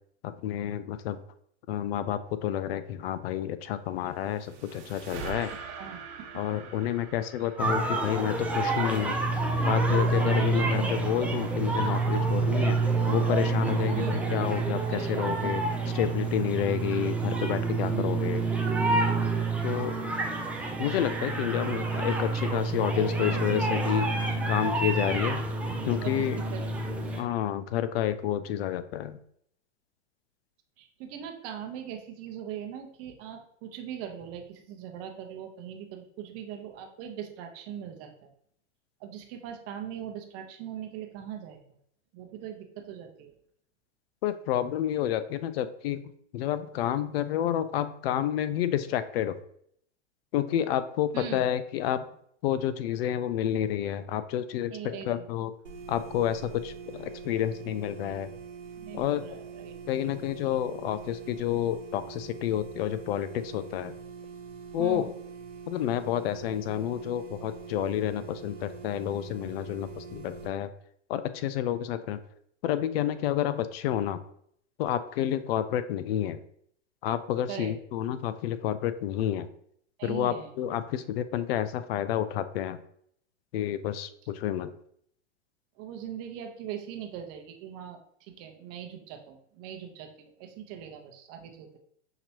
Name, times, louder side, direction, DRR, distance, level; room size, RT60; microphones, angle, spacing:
voice 1, 0.2-1.2 1.7-5.5 6.3-9.2 9.6-12.8 13.1-15.6 15.9-18.4 19.6-19.9 20.8-24.1 24.5-25.5 25.9-26.4 27.2-29.2 44.2-46.0 46.3-49.4 50.3-52.1 52.4-55.5 55.9-58.3 58.9-59.2 59.9-63.9 64.7-65.1 65.7-70.7 71.1-72.2 72.6-74.2 74.8-76.4 77.0-79.5 80.0-82.8 83.5-84.7, left 11 dB, 55° left, 12 dB, 0.5 m, -29 dB
sound 1, 3.9-9.3, right 6 dB, 60° right, 1.3 m, -44 dB
voice 2, 5.8-6.4 6.8-6.9 8.0-8.2 10.4-11.0 13.9-14.2 14.9-15.4 17.9-18.3 25.9-26.8 30.8-38.3 39.0-41.8 42.1-43.3 51.1-51.5 54.7-55.3 58.8-59.7 64.8-65.1 77.5-77.7 80.0-80.6 85.8-91.8, right 9 dB, 40° right, 4 dB, 0.9 m, -41 dB
sound 2, 7.6-27.2, right 3 dB, 5° right, 0.4 m, -28 dB
sound 3, 55.6-70.5, right 6 dB, 90° right, 1.0 m, -44 dB
5.7 x 2.9 x 2.8 m, 0.66 s
hypercardioid pair, 105°, 36 cm